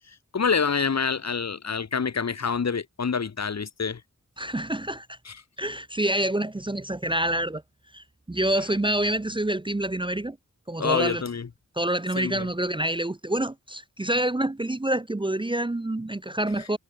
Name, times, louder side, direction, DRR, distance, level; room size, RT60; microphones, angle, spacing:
voice 1, 0.1-4.0 5.2-5.4 10.8-11.5 12.2-12.5, left 5 dB, 55° left, 0.9 m, -27 dB
voice 2, 4.4-5.2 5.6-7.6 7.9-10.4 10.7-11.2 11.8-16.8, right 1 dB, 15° right, 0.6 m, -27 dB
wide cardioid pair, 55°, 32 cm